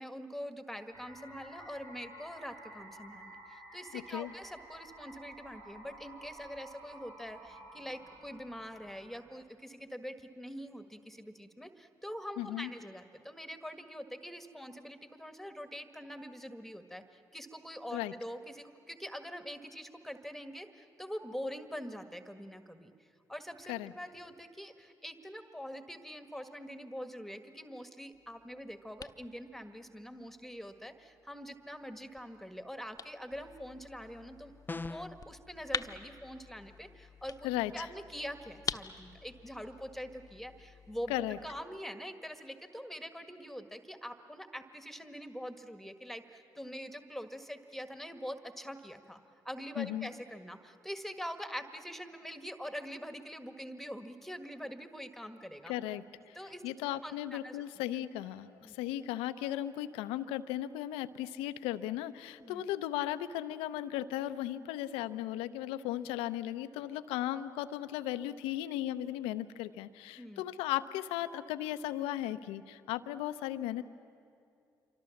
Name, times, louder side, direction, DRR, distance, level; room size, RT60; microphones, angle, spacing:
voice 1, 0.0-34.5 34.8-37.5 37.7-41.1 41.4-49.2 49.4-55.7 56.3-56.6 57.0-57.6 58.6-58.8 62.4-62.6 70.1-70.4, equal, 5° left, 8 dB, 1.7 m, -44 dB
sound 1, 0.9-9.4, right 1 dB, 65° right, 3.3 m, -52 dB
voice 2, 3.9-4.3 12.4-12.7 17.9-18.1 23.7-23.9 37.4-37.9 41.1-41.4 49.8-50.1 55.7-56.4 56.6-73.8, left 13 dB, 80° left, 12 dB, 0.7 m, -36 dB
sound 2, 28.1-41.6, left 5 dB, 40° left, 1.0 m, -46 dB
sound 3, 34.7-35.2, left 3 dB, 20° left, 0.5 m, -39 dB
27.0 x 24.5 x 7.2 m, 2.5 s
hypercardioid pair, 45°, 10 cm